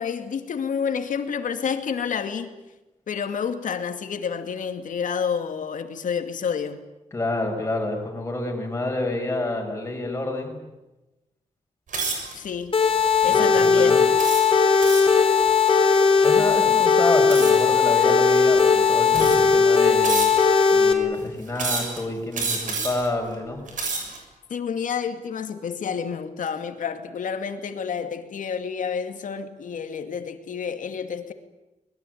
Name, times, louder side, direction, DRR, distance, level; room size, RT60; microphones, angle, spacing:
voice 1, 0.0-2.6 3.1-6.8 12.3-12.8 13.2-14.0 24.5-31.3, left 6 dB, 85° left, 7 dB, 2.4 m, -29 dB
voice 2, 7.1-10.6 13.3-14.0 16.2-20.3 20.7-23.7, left 2 dB, 20° left, 2 dB, 6.0 m, -28 dB
sound 1, 11.9-12.3 13.0-13.2 14.2-15.2 17.3-17.7 18.5-18.6 19.1-19.6 20.0-20.6 21.6-22.0 22.3-23.1 23.6-24.2, right 4 dB, 80° right, 7.1 m, -29 dB
sound 2, 12.7-20.9, left 5 dB, 40° left, 3.7 m, -18 dB
24.5 x 21.0 x 9.4 m, 1.0 s
wide cardioid pair, 175°, 13 cm